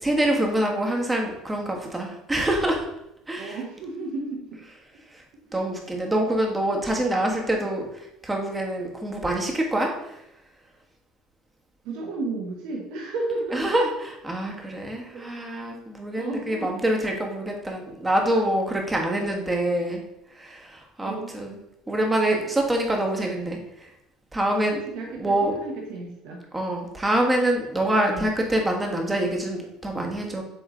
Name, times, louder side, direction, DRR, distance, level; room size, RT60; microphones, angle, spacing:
voice 1, 0.0-2.8 3.3-3.6 5.1-5.2 5.5-10.1 13.5-20.0 20.4-21.6 21.9-23.9 24.3-24.8 25.2-25.5 26.5-30.4, right 1 dB, 15° right, 1 dB, 1.4 m, -25 dB
voice 2, 3.4-4.6 5.5-5.6 11.8-13.7 15.1-15.2 16.2-16.7 19.3-19.5 21.0-21.3 24.7-26.4 28.1-28.3, right 3 dB, 70° right, -1 dB, 1.1 m, -33 dB
7.9 x 3.2 x 3.7 m, 0.84 s
supercardioid pair, 100°, 0 cm